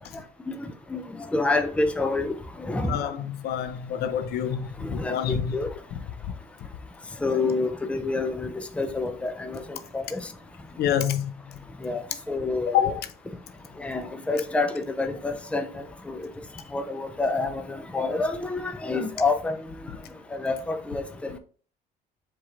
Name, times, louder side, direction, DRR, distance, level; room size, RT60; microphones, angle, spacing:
voice 1, 1.3-2.3 2.6-3.0 4.9-5.7 7.2-9.6 9.9-10.2 11.8-12.0 12.3-12.9 13.8-14.0 14.3-15.7 16.1-16.3 16.7-17.6 17.9-19.5 20.4-21.4, left 3 dB, 5° left, 0.5 m, -27 dB
voice 2, 2.9-5.5 5.9-6.0 10.8-11.3 12.7-13.0, left 9 dB, 70° left, 0.6 m, -27 dB
4.6 x 4.3 x 2.5 m
cardioid pair, 110°, 17 cm